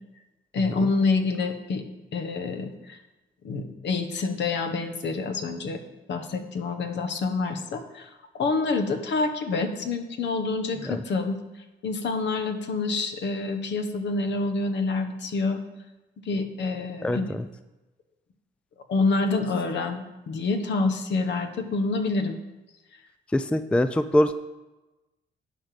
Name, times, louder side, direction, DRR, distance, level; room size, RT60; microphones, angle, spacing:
voice 1, 0.5-1.8 2.1-3.0 3.4-5.8 6.1-8.1 8.3-11.4 11.8-15.6 16.2-17.3 18.9-22.4, left 3 dB, 65° left, 7 dB, 1.2 m, -27 dB
voice 2, 23.3-24.3, left 1 dB, 5° left, 12 dB, 0.4 m, -22 dB
9.9 x 5.2 x 6.5 m, 1.1 s
cardioid pair, 90°, 20 cm